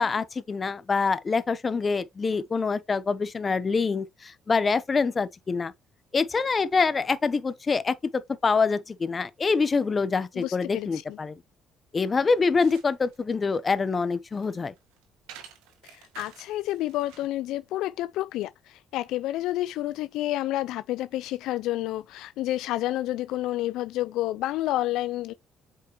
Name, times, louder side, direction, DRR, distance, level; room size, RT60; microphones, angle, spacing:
voice 1, 0.0-5.7 6.1-11.4 11.9-14.7, left 4 dB, 35° left, 1.1 m, -25 dB
voice 2, 10.4-11.2 15.8-25.3, left 15 dB, 75° left, 0.4 m, -30 dB
sound 1, 12.2-17.4, right 9 dB, 85° right, 1.6 m, -51 dB
8.3 x 5.2 x 3.2 m
supercardioid pair, 60°, 0 cm